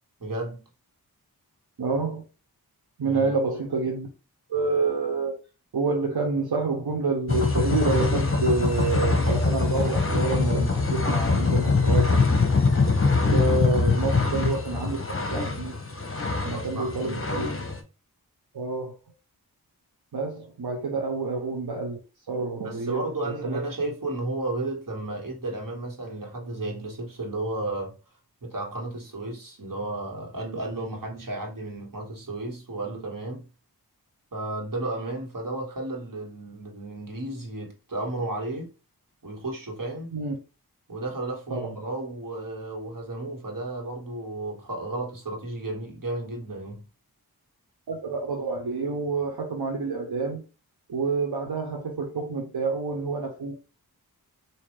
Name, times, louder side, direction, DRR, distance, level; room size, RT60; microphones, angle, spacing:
voice 1, 0.2-0.6 3.0-3.4 16.5-17.3 20.9-21.0 22.6-27.9 28.4-33.4 34.3-38.7 39.2-40.1 40.9-46.8, right 2 dB, 55° right, 1.7 m, -33 dB
voice 2, 1.8-2.2 3.0-4.1 4.5-5.4 5.7-12.2 13.2-15.0 15.3-15.7 16.4-17.5 18.5-18.9 20.1-22.0 22.3-23.6 40.1-40.3 41.5-41.7 47.9-50.4 50.9-53.5, right 3 dB, 80° right, 0.9 m, -28 dB
sound 1, 7.3-17.8, left 4 dB, 35° left, 0.9 m, -23 dB
4.2 x 2.8 x 3.2 m
cardioid pair, 40°, 38 cm